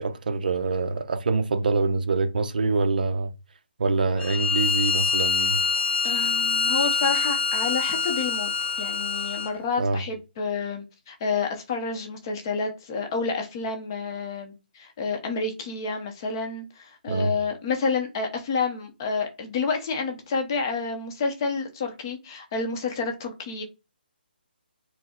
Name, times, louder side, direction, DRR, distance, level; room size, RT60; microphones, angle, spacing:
voice 1, 0.0-3.3 3.8-5.6 9.8-10.0 17.1-17.3, right 3 dB, 55° right, 0.6 m, -25 dB
Bowed string instrument, 4.2-9.6, left 4 dB, 80° left, 1.0 m, -25 dB
voice 2, 6.0-8.5 8.8-23.6, left 4 dB, 25° left, 0.7 m, -29 dB
4.4 x 2.1 x 4.2 m
hypercardioid pair, 170°, 6 cm